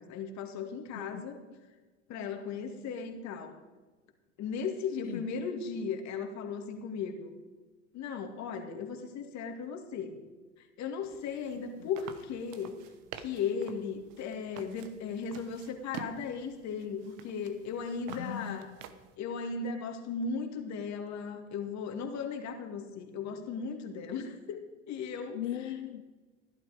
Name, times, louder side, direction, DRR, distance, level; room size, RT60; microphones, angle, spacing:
voice 1, 0.0-1.4 2.1-3.6 4.4-7.3 7.9-10.2 10.6-12.8 13.2-18.7 19.2-24.6 24.9-25.4, left 5 dB, 50° left, 5 dB, 2.4 m, -36 dB
sound 1, 11.0-19.2, right 9 dB, 55° right, 1.3 m, -49 dB
voice 2, 18.1-18.8 25.3-26.0, left 11 dB, 85° left, 7 dB, 0.8 m, -38 dB
15.0 x 12.0 x 5.1 m, 1.3 s
hypercardioid pair, 80°, 36 cm